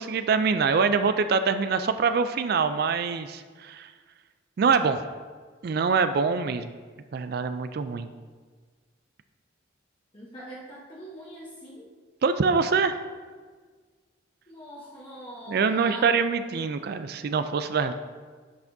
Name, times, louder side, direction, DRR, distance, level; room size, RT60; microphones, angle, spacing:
voice 1, 0.0-3.9 4.6-5.0 5.6-6.7 7.1-8.1 12.2-13.0 15.5-17.9, right 5 dB, 50° right, 10 dB, 0.3 m, -24 dB
voice 2, 10.1-11.9 14.5-16.0, equal, 25° left, -6 dB, 1.0 m, -43 dB
10.5 x 5.9 x 2.7 m, 1.5 s
head